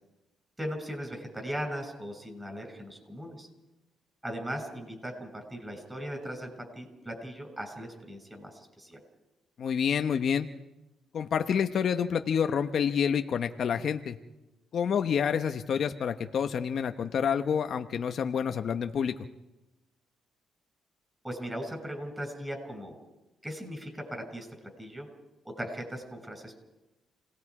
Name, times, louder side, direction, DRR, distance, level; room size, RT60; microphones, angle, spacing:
voice 1, 0.6-3.5 4.2-6.5 6.7-9.0 21.2-22.9 23.4-24.5 24.8-25.1 25.4-26.5, equal, 10° right, 4 dB, 6.6 m, -38 dB
voice 2, 9.6-10.5 11.1-14.2 14.7-19.1, left 7 dB, 60° left, 7 dB, 1.0 m, -28 dB
29.5 x 18.5 x 4.9 m, 1.0 s
cardioid pair, 90°, 0 cm